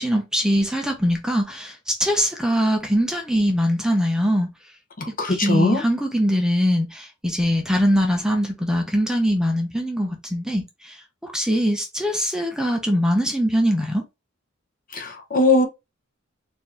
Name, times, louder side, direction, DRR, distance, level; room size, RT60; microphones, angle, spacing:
voice 1, 0.0-4.5 5.3-10.9 11.3-14.0, equal, 5° right, 0.7 m, -22 dB
voice 2, 5.0-5.8 14.9-15.7, left 2 dB, 40° left, 1.0 m, -20 dB
4.4 x 2.7 x 3.4 m
head